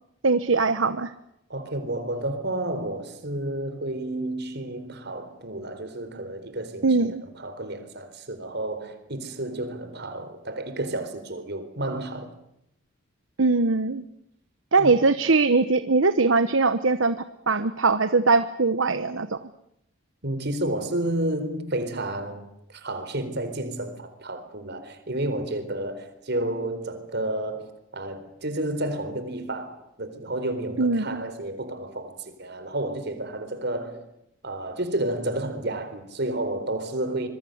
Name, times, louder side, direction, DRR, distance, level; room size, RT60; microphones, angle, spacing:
voice 1, 0.2-1.1 6.8-7.2 13.4-14.0 14.7-19.5 30.8-31.2, right 3 dB, 75° right, 1.0 m, -21 dB
voice 2, 1.5-6.9 7.2-12.3 14.8-14.9 20.2-34.0 34.4-37.3, right 1 dB, 55° right, 4.1 m, -31 dB
25.5 x 22.5 x 8.0 m
head